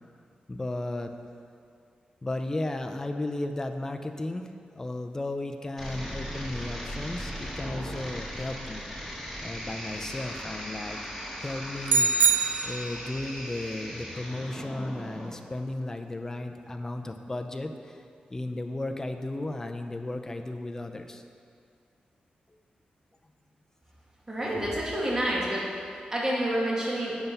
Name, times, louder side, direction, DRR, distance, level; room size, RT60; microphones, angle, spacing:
voice 1, 0.5-1.1 2.2-4.5 4.7-8.9 9.4-11.0 11.4-12.1 12.6-18.0 18.3-21.2, left 2 dB, 20° left, 6 dB, 0.5 m, -34 dB
sound 1, 5.8-15.3, equal, ahead, 2.0 m, -38 dB
sound 2, 11.9-13.2, right 4 dB, 90° right, 0.4 m, -24 dB
voice 2, 24.3-25.8 26.1-27.2, right 1 dB, 25° right, -5 dB, 1.5 m, -28 dB
7.7 x 5.8 x 5.4 m, 2.3 s
wide cardioid pair, 120°, 3 cm